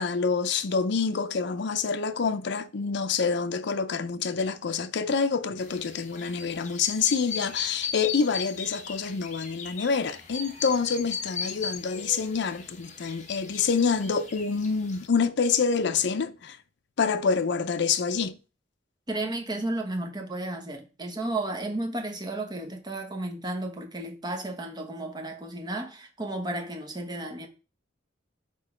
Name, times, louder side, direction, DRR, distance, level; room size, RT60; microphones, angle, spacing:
voice 1, 0.0-16.6 17.0-18.4, left 5 dB, 65° left, 0.5 m, -27 dB
sound 1, 5.6-15.1, left 6 dB, 40° left, 1.1 m, -38 dB
voice 2, 19.1-27.5, right 2 dB, 20° right, 1.0 m, -33 dB
5.2 x 4.5 x 4.9 m
head